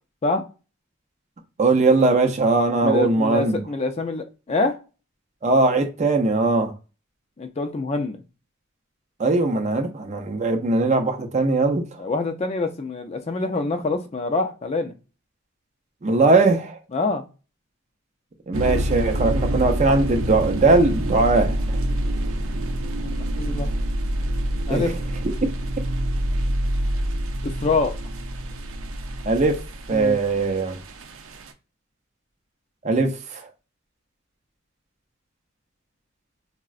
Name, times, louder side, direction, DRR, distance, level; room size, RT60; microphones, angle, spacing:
voice 1, 1.6-3.6 5.4-6.7 9.2-11.9 16.0-16.8 18.5-21.8 24.7-25.0 25.2-25.5 29.3-30.8 32.8-33.5, right 3 dB, 35° right, 0.5 m, -20 dB
voice 2, 2.8-4.8 7.4-8.2 12.0-14.9 16.9-17.2 22.8-23.7 24.7-24.9 27.4-28.0 29.9-30.2, left 3 dB, 30° left, 0.4 m, -25 dB
sound 1, 18.5-31.5, right 1 dB, 85° right, 0.5 m, -27 dB
3.6 x 2.0 x 2.4 m
head